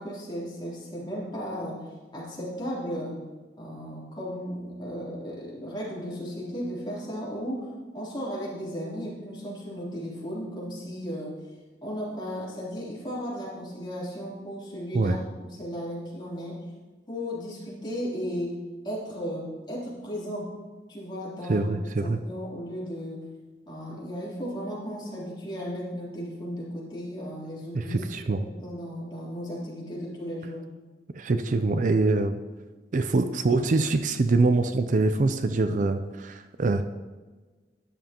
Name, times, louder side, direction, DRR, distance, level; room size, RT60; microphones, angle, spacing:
voice 1, 0.0-1.8 2.1-3.2 3.6-7.7 7.9-11.4 11.8-16.6 17.1-18.5 18.8-20.5 20.9-21.6 22.0-23.2 23.7-28.0 28.3-30.6, equal, 25° left, -7 dB, 3.2 m, -35 dB
voice 2, 21.5-22.2 27.7-28.4 31.1-32.4 32.9-36.8, right 3 dB, 45° right, 9 dB, 0.4 m, -24 dB
12.5 x 9.9 x 2.9 m, 1.3 s
head